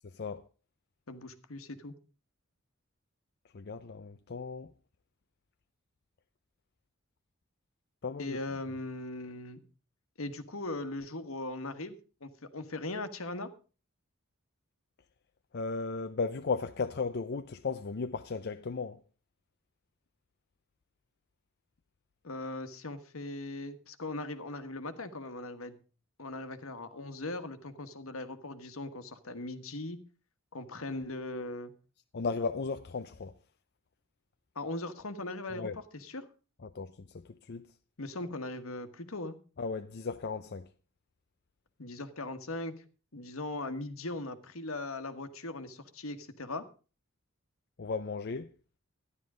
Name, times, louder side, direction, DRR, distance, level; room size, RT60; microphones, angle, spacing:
voice 1, 0.0-0.4 3.5-4.7 8.0-8.4 15.5-19.0 32.1-33.3 35.5-35.8 36.6-37.7 39.6-40.7 47.8-48.5, left 4 dB, 50° left, 0.6 m, -35 dB
voice 2, 1.1-1.9 8.2-9.6 10.2-13.5 22.2-25.8 26.2-30.0 30.5-31.7 34.5-36.3 38.0-39.4 41.8-42.8 43.1-46.7, left 2 dB, 75° left, 1.4 m, -39 dB
13.0 x 11.0 x 4.9 m
head